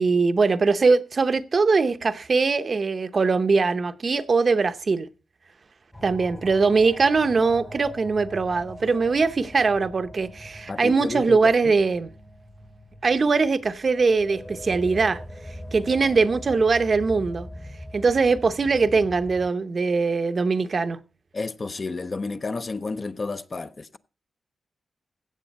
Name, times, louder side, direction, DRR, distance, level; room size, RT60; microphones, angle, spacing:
voice 1, 0.0-5.1 6.0-12.1 13.0-15.2 15.7-17.5 17.9-21.0, right 4 dB, 40° right, 0.7 m, -21 dB
sound 1, 5.9-19.5, equal, 10° left, 1.0 m, -41 dB
voice 2, 10.7-11.7 21.3-24.0, left 3 dB, 35° left, 0.6 m, -31 dB
15.5 x 7.6 x 4.1 m
wide cardioid pair, 130°, 0 cm